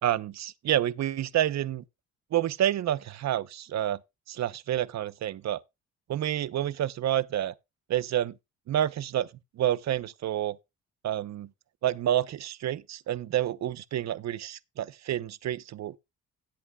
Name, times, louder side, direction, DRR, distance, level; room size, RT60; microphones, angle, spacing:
voice 1, 0.0-1.8 2.3-4.0 4.3-5.6 6.1-7.5 7.9-8.3 8.7-9.3 9.6-10.6 11.0-11.5 11.8-16.0, right 11 dB, 60° right, 0.9 m, -29 dB
17.5 x 8.2 x 2.3 m
cardioid pair, 90°, 30 cm